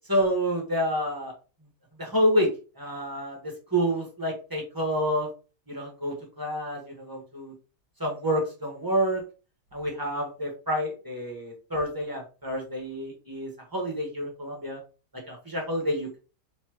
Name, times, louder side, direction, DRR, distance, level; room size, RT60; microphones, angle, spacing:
voice 1, 0.1-1.3 2.0-2.5 2.8-5.3 5.7-7.5 8.0-9.2 9.7-14.8 15.3-16.2, equal, 15° right, -1 dB, 1.5 m, -28 dB
4.4 x 3.9 x 3.0 m, 0.34 s
omnidirectional pair, 1.8 m